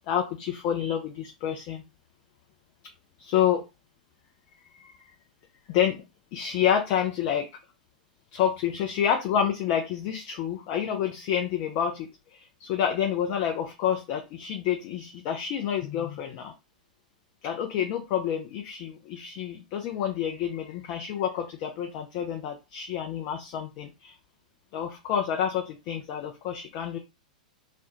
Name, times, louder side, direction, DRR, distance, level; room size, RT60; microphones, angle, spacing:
voice 1, 0.1-1.8 3.2-3.6 4.7-4.9 5.7-6.0 6.3-7.5 8.3-16.5 17.4-24.1 24.7-27.0, left 9 dB, 45° left, 4 dB, 0.4 m, -28 dB
2.3 x 2.1 x 2.9 m, 0.26 s
figure-of-eight pair, 100°, 4 cm